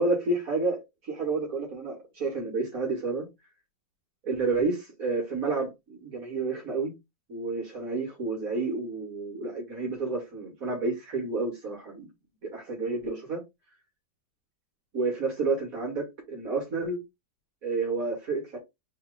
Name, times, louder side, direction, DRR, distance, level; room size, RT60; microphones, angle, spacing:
voice 1, 0.0-3.3 4.2-6.9 7.3-12.1 12.4-13.4 14.9-17.0 17.6-18.6, right 3 dB, 55° right, 2.0 m, -30 dB
4.2 x 3.1 x 3.7 m
omnidirectional pair, 1.8 m